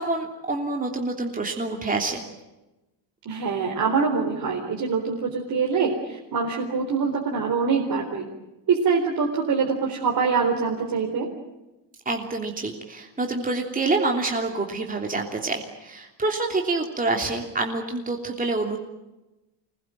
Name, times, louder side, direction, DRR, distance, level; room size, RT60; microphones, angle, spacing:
voice 1, 0.0-2.2 12.0-18.8, right 3 dB, 20° right, 2 dB, 3.1 m, -27 dB
voice 2, 3.3-8.2 8.7-11.3, right 5 dB, 50° right, 0 dB, 4.2 m, -24 dB
25.5 x 20.5 x 9.2 m, 1.0 s
cardioid pair, 120°, 45 cm